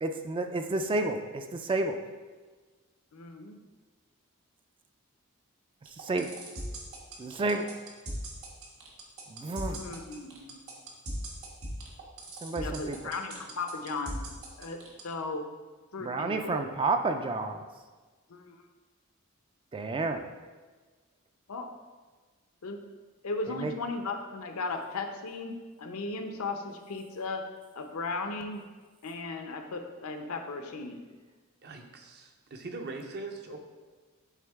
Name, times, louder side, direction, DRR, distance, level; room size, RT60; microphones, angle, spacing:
voice 1, 0.0-2.0 6.0-6.4 7.2-7.7 9.3-9.8 12.4-13.0 16.0-17.6 19.7-20.2 23.5-23.7, right 2 dB, 25° right, 6 dB, 0.3 m, -30 dB
voice 2, 3.1-3.6 9.7-10.6 12.5-14.2 14.6-14.8 15.0-15.5 15.9-16.7 18.3-18.6 21.5-21.7 22.6-22.8 23.2-27.4 27.7-28.6 29.0-31.0, left 3 dB, 80° left, 5 dB, 0.7 m, -36 dB
sound 1, 5.9-15.0, right 1 dB, 70° right, 1.3 m, -39 dB
voice 3, 31.6-33.6, right 3 dB, 50° right, 4 dB, 0.7 m, -41 dB
8.2 x 3.7 x 3.5 m, 1.3 s
head